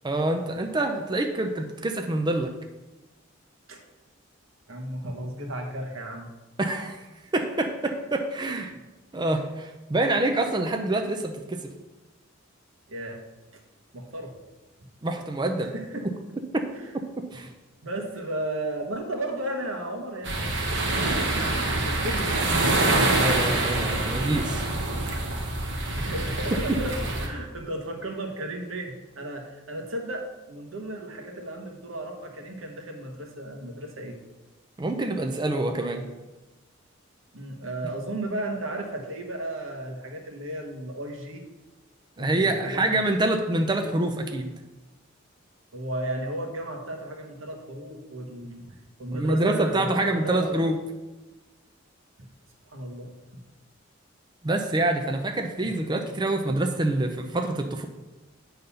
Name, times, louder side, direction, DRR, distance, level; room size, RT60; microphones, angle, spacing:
voice 1, 0.0-2.5 6.6-7.1 7.3-8.7 9.1-11.6 15.0-15.7 17.2-17.5 23.1-24.6 34.8-36.1 42.2-44.5 49.1-50.8 54.4-57.9, right 2 dB, 20° right, 4 dB, 0.5 m, -26 dB
voice 2, 4.7-6.3 8.7-8.8 12.9-13.3 13.5-13.6 13.9-14.4 14.8-14.9 15.6-16.1 16.7-16.9 17.8-21.2 21.8-22.5 25.9-34.2 37.3-41.4 42.2-43.0 45.7-50.6 52.6-53.2, right 1 dB, 85° right, 3 dB, 1.2 m, -34 dB
sound 1, 20.2-27.3, right 2 dB, 60° right, 1.2 m, -25 dB
8.3 x 4.0 x 5.6 m, 1.1 s
head